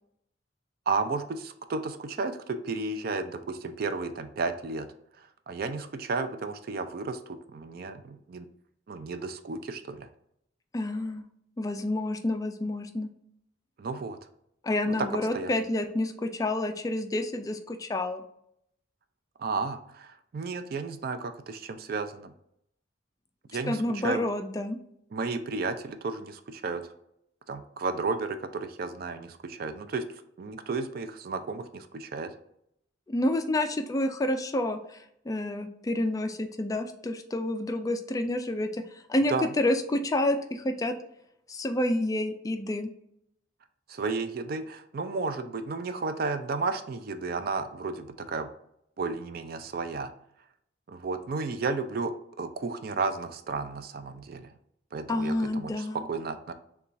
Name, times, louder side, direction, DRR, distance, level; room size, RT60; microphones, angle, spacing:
voice 1, 0.9-4.9 5.5-8.5 8.9-10.1 13.8-14.2 15.0-15.1 15.3-15.5 19.4-22.3 23.5-24.3 25.1-26.8 27.5-30.0 30.4-32.3 39.3-39.5 43.9-48.5 49.0-50.1 50.9-52.1 52.4-54.5 54.9-56.5, right 4 dB, 50° right, 9 dB, 0.4 m, -33 dB
voice 2, 10.7-11.3 11.6-13.1 14.6-18.2 23.7-24.8 33.1-35.0 35.3-38.8 39.1-40.9 41.5-42.9 55.1-56.0, left 1 dB, 20° left, 7 dB, 0.3 m, -29 dB
6.7 x 2.3 x 2.5 m, 0.74 s
head